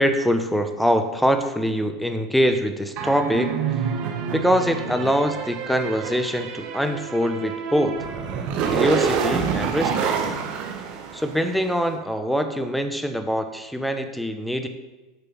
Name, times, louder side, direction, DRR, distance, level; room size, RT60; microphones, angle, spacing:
voice 1, 0.0-3.6 4.3-8.0 8.7-10.2 11.1-14.7, equal, ahead, 8 dB, 1.0 m, -23 dB
sound 1, 3.0-11.7, right 6 dB, 45° right, 1.6 m, -27 dB
9.2 x 6.7 x 5.5 m, 1.2 s
figure-of-eight pair, 90°, 3 cm